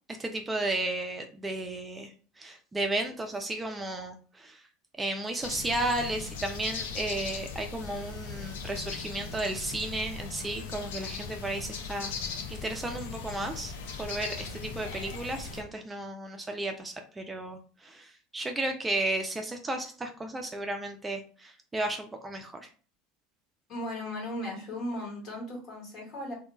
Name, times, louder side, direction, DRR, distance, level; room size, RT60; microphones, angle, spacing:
voice 1, 0.1-2.1 2.4-4.6 5.0-12.1 12.5-13.7 14.0-22.7, right 2 dB, 15° right, 4 dB, 0.4 m, -34 dB
sound 1, 5.4-15.6, left 5 dB, 70° left, 0.4 m, -39 dB
voice 2, 23.7-26.3, left 1 dB, 45° left, -1 dB, 1.3 m, -36 dB
2.2 x 2.1 x 2.9 m, 0.40 s
figure-of-eight pair, 75°, 0 cm